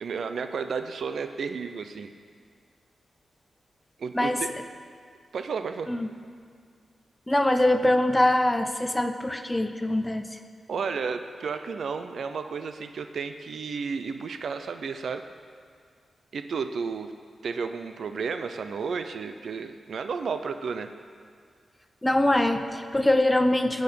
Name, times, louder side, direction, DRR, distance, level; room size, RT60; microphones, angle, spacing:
voice 1, 0.0-2.1 4.0-4.5 5.3-5.9 10.7-15.2 16.3-17.1 17.4-20.9, right 5 dB, 65° right, 8 dB, 0.6 m, -32 dB
voice 2, 7.3-10.3 22.0-23.8, left 1 dB, 10° left, 7 dB, 0.6 m, -23 dB
17.5 x 6.4 x 8.4 m, 2.1 s
wide cardioid pair, 170°, 0 cm